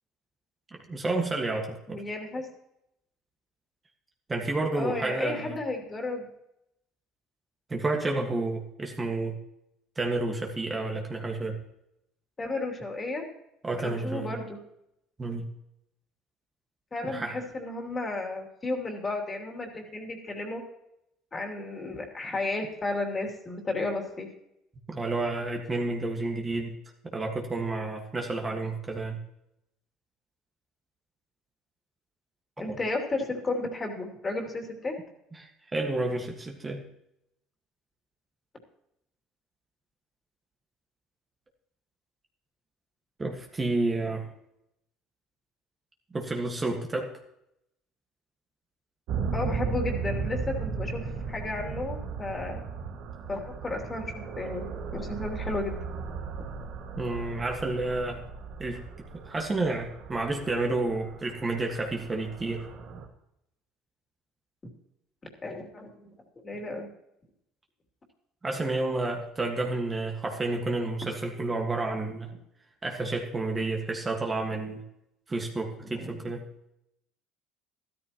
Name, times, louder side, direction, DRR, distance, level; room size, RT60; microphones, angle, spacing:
voice 1, 0.9-2.0 4.3-5.6 7.7-9.4 9.9-11.6 13.6-14.3 15.2-15.5 17.0-17.4 24.9-26.7 27.1-29.2 32.7-32.8 35.3-36.8 43.2-44.3 46.1-47.2 57.0-58.2 58.6-58.8 59.1-62.7 68.4-72.3 72.8-74.8 75.3-76.4, right 2 dB, 20° right, 2 dB, 1.6 m, -30 dB
voice 2, 1.9-2.5 4.7-6.3 12.4-13.3 13.8-14.6 16.9-20.6 21.3-24.3 32.6-35.0 49.3-52.6 53.3-55.8 65.4-66.1 66.4-66.9 75.9-76.2, left 2 dB, 25° left, 2 dB, 2.9 m, -33 dB
sound 1, 49.1-63.1, right 5 dB, 70° right, 1.9 m, -36 dB
13.0 x 13.0 x 3.0 m, 0.80 s
supercardioid pair, 95°, 0 cm